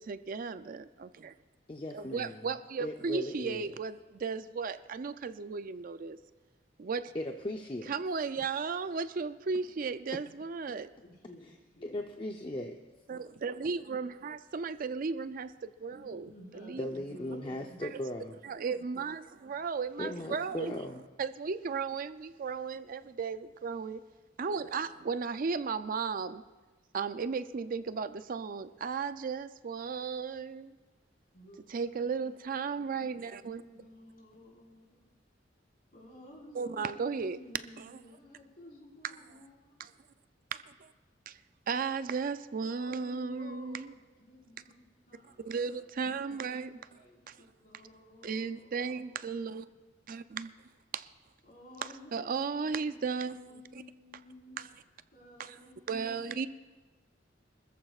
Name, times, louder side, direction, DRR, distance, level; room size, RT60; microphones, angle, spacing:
voice 1, 0.1-1.3 1.9-6.2 6.8-7.1 7.9-10.9 13.1-16.9 17.8-17.9 18.4-20.8 21.2-24.0 24.4-26.4 26.9-30.7 31.7-33.6 36.5-37.4 37.8-38.0 39.8-39.9 40.5-40.9 41.3-41.4 41.7-43.9 45.4-46.8 47.3-47.4 48.2-49.7 50.1-50.5 50.9-51.1 51.8-53.4 54.6-54.7 55.4-55.6 55.9-56.5, right 5 dB, 50° right, 0.4 m, -35 dB
voice 2, 1.7-2.5 2.8-3.7 7.1-7.9 8.4-8.6 11.8-12.8 16.8-18.4 20.0-21.0, left 1 dB, 30° left, 0.6 m, -38 dB
voice 3, 11.0-12.0 15.9-17.8 31.3-35.1 35.9-39.9 42.6-47.2 47.6-49.5 51.4-52.2 52.5-54.6 55.1-56.5, left 1 dB, 55° left, 4.5 m, -54 dB
26.0 x 14.0 x 2.4 m
head